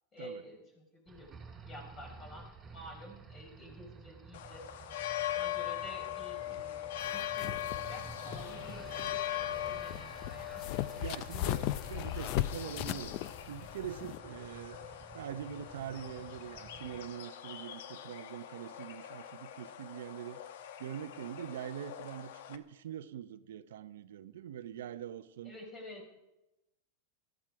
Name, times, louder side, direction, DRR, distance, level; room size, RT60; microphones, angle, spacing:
voice 1, 0.1-1.3 1.7-4.6 5.3-6.7 7.0-10.6 25.4-26.0, equal, 25° left, 4.6 m, -50 dB
sound 1, 1.1-17.0, right 4 dB, 15° right, 3.0 m, -52 dB
sound 2, 4.3-22.6, left 12 dB, 70° left, 1.1 m, -41 dB
sound 3, 7.0-14.2, left 13 dB, 45° left, 0.6 m, -38 dB
voice 2, 11.0-13.1 13.5-14.8 15.1-20.4 20.8-25.5, right 10 dB, 80° right, 0.7 m, -43 dB
18.5 x 13.5 x 4.8 m
supercardioid pair, 145°, 0 cm